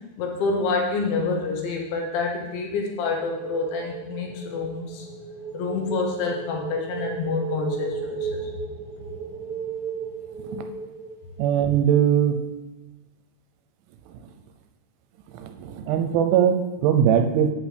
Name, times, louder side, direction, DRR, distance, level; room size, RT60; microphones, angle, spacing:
voice 1, 0.2-5.1 5.5-8.5, left 4 dB, 80° left, 0 dB, 3.4 m, -27 dB
sound 1, 2.8-11.7, right 5 dB, 65° right, 2.7 m, -35 dB
voice 2, 11.4-12.4 15.3-17.5, right 9 dB, 85° right, 6 dB, 3.0 m, -21 dB
8.3 x 8.2 x 3.4 m, 1.1 s
omnidirectional pair, 5.5 m